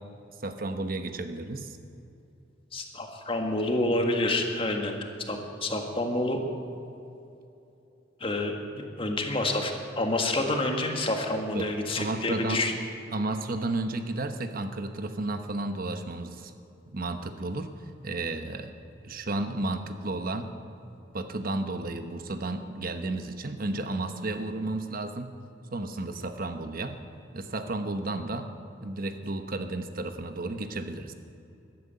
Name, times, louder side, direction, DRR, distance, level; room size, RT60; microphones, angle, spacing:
voice 1, 0.4-1.8 11.5-11.7 12.0-12.6 13.1-16.5 16.9-17.7 18.0-18.7 19.0-20.5 21.1-25.3 25.7-27.0 27.3-28.5 28.8-31.1, right 2 dB, 50° right, 8 dB, 1.1 m, -32 dB
voice 2, 2.7-5.0 5.3-6.4 8.2-12.7, left 2 dB, 30° left, 3 dB, 1.8 m, -28 dB
13.5 x 12.0 x 8.4 m, 2.8 s
head